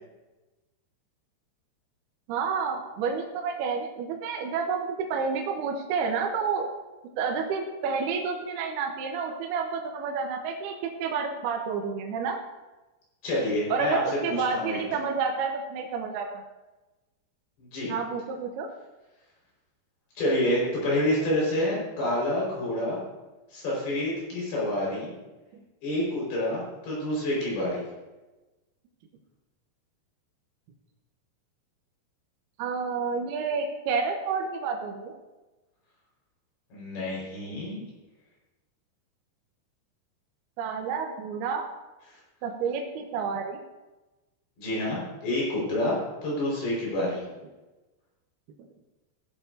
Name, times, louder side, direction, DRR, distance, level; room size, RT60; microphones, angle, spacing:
voice 1, 2.3-6.7 7.2-12.4 13.7-16.4 17.9-18.7 25.5-25.6 32.6-35.1 40.6-41.7 42.4-43.6, right 5 dB, 75° right, 2 dB, 2.7 m, -29 dB
voice 2, 13.2-14.0 14.3-14.8 17.6-17.9 20.2-23.0 23.5-25.1 25.8-27.8 36.7-37.9 44.6-47.2, left 1 dB, 60° left, -5 dB, 6.7 m, -28 dB
15.5 x 12.0 x 2.7 m, 1.1 s
omnidirectional pair, 5.1 m